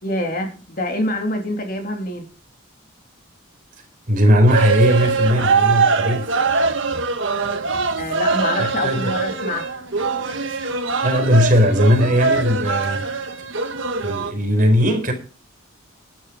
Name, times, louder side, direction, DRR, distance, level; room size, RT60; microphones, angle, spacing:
voice 1, 0.0-2.3 8.0-9.7, left 1 dB, 40° left, 3.0 m, -25 dB
voice 2, 4.1-6.5 8.6-9.1 11.0-13.1 14.0-15.1, equal, 40° right, 4.1 m, -18 dB
sound 1, 4.5-14.3, right 4 dB, 60° right, 1.6 m, -22 dB
12.5 x 11.0 x 5.0 m
head